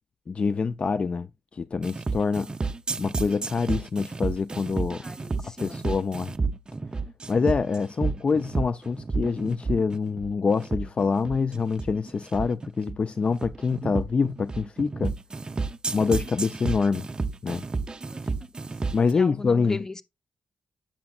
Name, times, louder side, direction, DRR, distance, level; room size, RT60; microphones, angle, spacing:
voice 1, 0.3-1.3 1.5-2.5 3.0-5.0 5.6-6.3 7.3-15.1 15.9-17.1 17.4-17.6 18.9-19.8, left 5 dB, 40° left, 0.4 m, -25 dB
sound 1, 1.8-19.1, right 4 dB, 30° right, 0.5 m, -31 dB
voice 2, 5.0-5.8 18.1-18.2 19.1-20.0, left 2 dB, 20° left, 0.7 m, -38 dB
8.6 x 7.0 x 2.4 m
cardioid pair, 100°, 3 cm